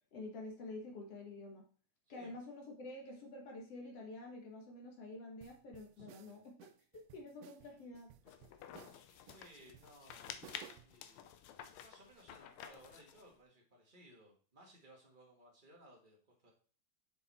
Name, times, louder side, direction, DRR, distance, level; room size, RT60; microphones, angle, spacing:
voice 1, 0.1-1.7 2.1-6.5 6.9-8.1, left 2 dB, 55° left, 1 dB, 2.1 m, -48 dB
voice 2, 2.1-2.4 6.0-6.4 9.2-10.2 10.8-11.3 11.8-16.5, right 1 dB, 60° right, -1 dB, 0.5 m, -61 dB
sound 1, 5.4-11.0, right 12 dB, 80° right, 2.1 m, -59 dB
sound 2, 8.3-13.3, left 9 dB, 80° left, 1.6 m, -51 dB
6.7 x 6.6 x 4.1 m, 0.43 s
omnidirectional pair, 3.8 m